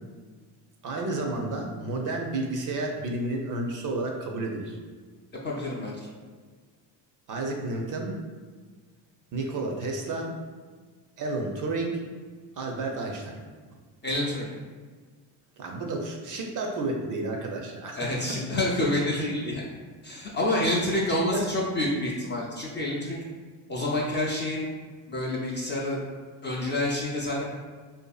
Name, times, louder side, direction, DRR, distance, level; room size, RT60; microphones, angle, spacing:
voice 1, 0.8-4.8 7.3-8.2 9.3-10.4 11.2-12.0 12.6-13.4 15.6-18.4 20.5-20.6 21.1-21.4, right 2 dB, 40° right, 1 dB, 0.5 m, -31 dB
voice 2, 5.4-6.0 14.0-14.5 18.0-19.6 20.0-23.2 23.7-24.7 25.1-26.0 26.4-27.4, left 1 dB, 25° left, -4 dB, 0.4 m, -28 dB
2.6 x 2.4 x 2.3 m, 1.5 s
supercardioid pair, 75°, 49 cm